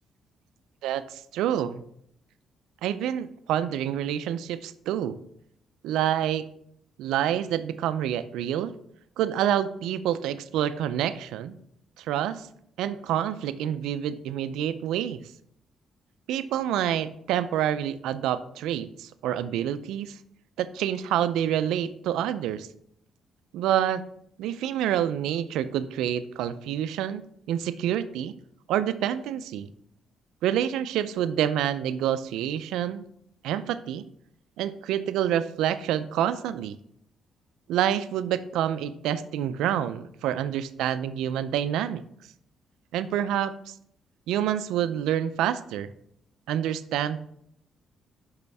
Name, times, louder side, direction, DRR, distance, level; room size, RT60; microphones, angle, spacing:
voice 1, 0.8-1.8 2.8-5.2 5.8-6.5 7.0-8.7 9.2-11.6 12.0-12.5 12.8-15.2 16.3-20.2 20.6-22.7 23.5-24.0 24.4-28.3 28.7-29.7 30.4-33.0 33.4-34.0 34.6-36.8 37.7-42.0 42.9-43.7 44.3-45.9 46.5-47.2, right 10 dB, 90° right, 13 dB, 0.4 m, -27 dB
6.7 x 5.6 x 3.4 m, 0.70 s
cardioid pair, 90°, 0 cm